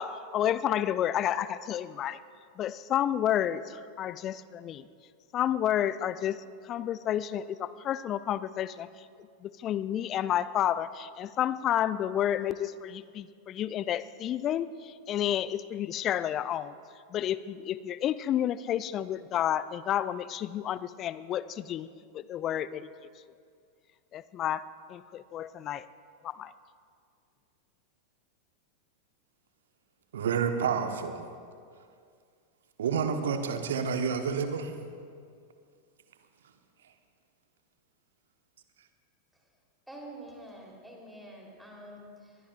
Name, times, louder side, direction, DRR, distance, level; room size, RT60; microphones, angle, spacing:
voice 1, 0.0-2.2 2.6-4.9 5.3-8.9 9.4-16.8 17.1-21.9 22.1-22.9 24.1-25.9 26.2-26.5, left 11 dB, 30° left, 17 dB, 0.4 m, -30 dB
voice 2, 30.1-31.3 32.8-34.7, right 6 dB, 60° right, 7 dB, 1.2 m, -29 dB
voice 3, 39.9-42.4, right 1 dB, 5° right, -2 dB, 3.6 m, -47 dB
24.0 x 20.5 x 2.6 m, 2.2 s
figure-of-eight pair, 90°, 0 cm